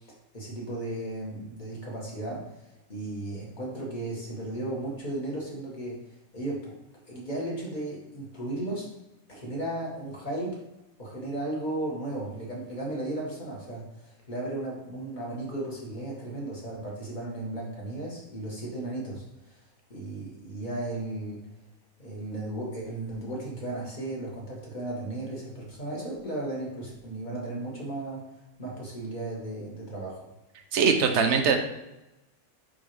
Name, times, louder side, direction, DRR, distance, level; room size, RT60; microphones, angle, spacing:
voice 1, 0.3-2.6 2.9-6.7 7.1-8.9 9.3-10.6 11.0-19.6 19.9-21.4 22.0-28.3 28.6-30.3, right 1 dB, 25° left, -4 dB, 2.0 m, -35 dB
voice 2, 30.7-31.6, right 6 dB, 60° right, 5 dB, 0.7 m, -21 dB
9.6 x 3.9 x 3.4 m, 0.96 s
omnidirectional pair, 2.0 m